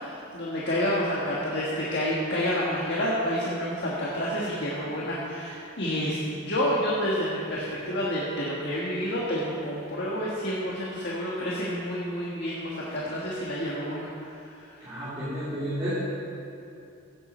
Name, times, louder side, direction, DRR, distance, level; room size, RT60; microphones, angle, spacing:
voice 1, 0.0-14.3 14.7-14.9, equal, 55° left, -6 dB, 1.5 m, -29 dB
voice 2, 14.8-15.9, equal, 25° right, -13 dB, 3.2 m, -31 dB
15.5 x 8.2 x 4.3 m, 2.7 s
head